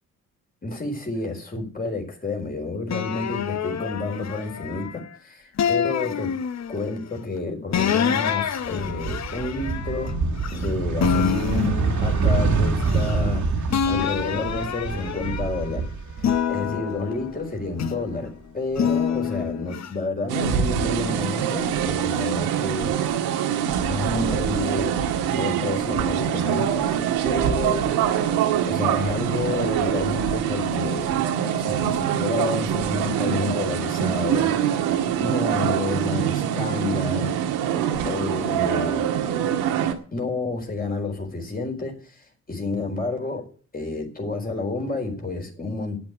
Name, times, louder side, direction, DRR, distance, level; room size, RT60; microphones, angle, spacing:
voice 1, 0.6-6.3 6.7-10.2 10.5-15.9 16.5-23.0 23.9-25.0 25.3-26.9 27.2-28.3 28.7-31.2 31.6-34.5 35.2-37.3 38.0-39.1 40.1-46.0, left 3 dB, 25° left, 4.3 m, -30 dB
sound 1, 2.9-5.0 5.6-6.9 7.7-10.7 11.0-13.4 13.7-15.7 16.2-18.2 18.8-19.9, left 8 dB, 50° left, 1.1 m, -27 dB
sound 2, 8.6-16.8 17.1-18.3, right 4 dB, 55° right, 2.0 m, -26 dB
sound 3, 20.3-39.9, right 9 dB, 85° right, 1.8 m, -24 dB
10.5 x 8.9 x 8.1 m
hypercardioid pair, 50°, 36 cm